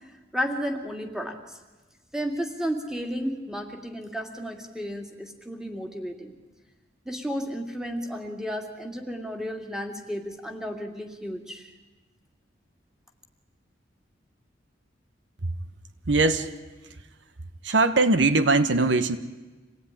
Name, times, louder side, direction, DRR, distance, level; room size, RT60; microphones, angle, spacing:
voice 1, 0.3-1.4 2.1-6.3 7.1-11.7, equal, 5° right, 4 dB, 2.5 m, -33 dB
voice 2, 16.1-16.5 17.6-19.2, right 3 dB, 70° right, 11 dB, 1.2 m, -21 dB
26.5 x 18.0 x 10.0 m, 1.2 s
head